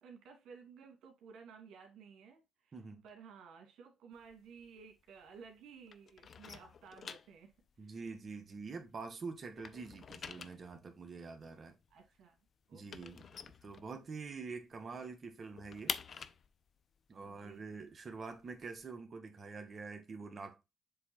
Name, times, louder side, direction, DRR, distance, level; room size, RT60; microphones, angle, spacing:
voice 1, 0.0-2.8 3.0-8.0 11.9-12.4 12.7-13.5 17.2-17.8, right 6 dB, 80° right, 2.5 m, -56 dB
voice 2, 2.7-3.0 7.8-11.8 12.7-13.2 13.6-16.2 17.1-20.6, right 4 dB, 40° right, 1.6 m, -46 dB
sound 1, 4.1-5.6 5.9-9.1 9.4-14.4 14.7-14.8 15.1-18.8, left 6 dB, 50° left, 0.6 m, -47 dB
7.7 x 3.5 x 4.4 m
cardioid pair, 90°, 0 cm